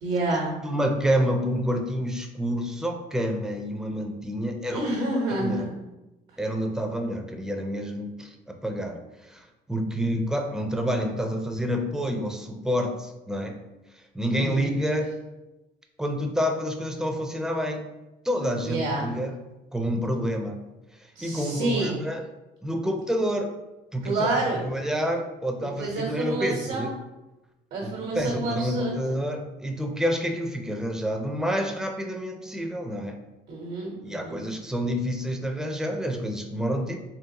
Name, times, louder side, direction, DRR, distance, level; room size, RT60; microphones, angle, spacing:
voice 1, 0.0-0.5 4.7-5.7 14.3-14.6 18.6-19.1 21.1-22.0 24.0-24.7 25.8-26.9 27.7-29.2 33.5-34.4, right 2 dB, 80° right, -2 dB, 1.1 m, -28 dB
voice 2, 0.6-4.8 5.3-5.7 6.4-9.0 9.3-13.6 14.1-15.2 16.0-17.9 18.2-19.3 19.7-20.6 21.2-22.2 22.6-23.5 23.9-24.3 24.6-26.9 27.8-33.2 34.0-37.0, equal, 5° right, 3 dB, 0.4 m, -28 dB
3.8 x 3.1 x 2.8 m, 1.0 s
cardioid pair, 110°, 17 cm